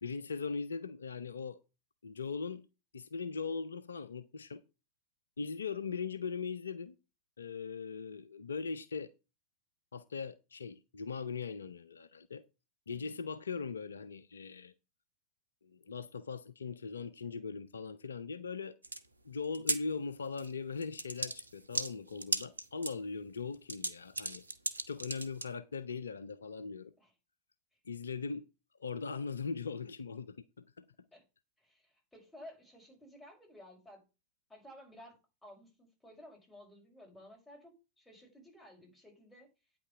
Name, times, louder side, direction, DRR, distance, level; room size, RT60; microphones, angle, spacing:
voice 1, 0.0-1.6 2.0-2.7 2.9-4.6 5.4-7.0 7.4-9.1 9.9-12.4 12.9-14.7 15.6-18.8 19.2-24.4 24.9-26.9 27.9-28.5 28.8-30.9, left 5 dB, 70° left, 0.6 m, -40 dB
sound 1, 18.8-19.0 19.4-19.8 20.4-20.5 20.8-22.9 23.5-25.5, right 2 dB, 80° right, 0.9 m, -36 dB
voice 2, 31.6-34.0 34.5-39.5, left 1 dB, 5° left, 5.5 m, -55 dB
9.3 x 6.0 x 5.8 m
figure-of-eight pair, 90°, 0 cm